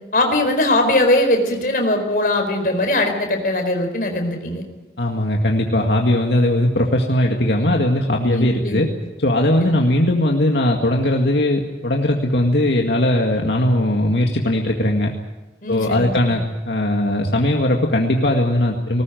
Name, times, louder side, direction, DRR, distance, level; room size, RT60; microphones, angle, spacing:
voice 1, 0.1-4.6 8.3-8.8 9.7-9.9 15.6-16.4, left 1 dB, 50° left, 4 dB, 4.5 m, -20 dB
voice 2, 5.0-8.9 9.2-15.1 15.7-19.0, left 1 dB, 75° left, 1 dB, 2.1 m, -19 dB
20.0 x 19.5 x 9.2 m, 1.1 s
head